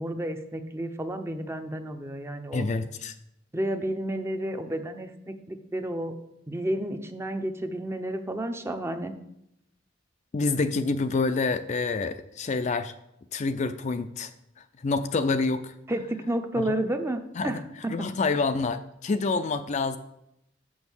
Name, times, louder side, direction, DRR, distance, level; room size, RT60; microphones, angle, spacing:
voice 1, 0.0-2.7 3.5-6.1 6.5-9.1 15.9-18.0, right 1 dB, 15° right, 7 dB, 0.6 m, -31 dB
voice 2, 2.5-3.2 10.3-12.9 13.3-14.3 14.8-15.7 16.6-16.8 17.4-17.6 17.9-20.0, left 3 dB, 40° left, 10 dB, 0.4 m, -27 dB
6.3 x 6.1 x 7.1 m, 0.81 s
head